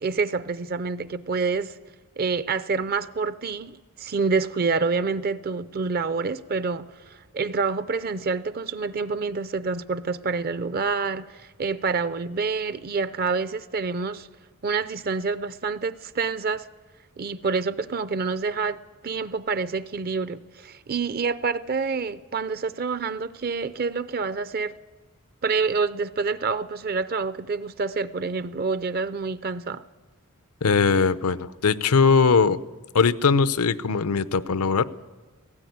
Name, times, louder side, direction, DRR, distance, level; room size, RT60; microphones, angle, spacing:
voice 1, 0.0-1.7 2.2-14.3 14.6-16.7 17.2-24.8 25.4-29.8, right 4 dB, 45° right, 0.6 m, -27 dB
voice 2, 30.6-32.6 32.9-34.8, left 5 dB, 85° left, 0.7 m, -20 dB
17.0 x 16.0 x 9.4 m
head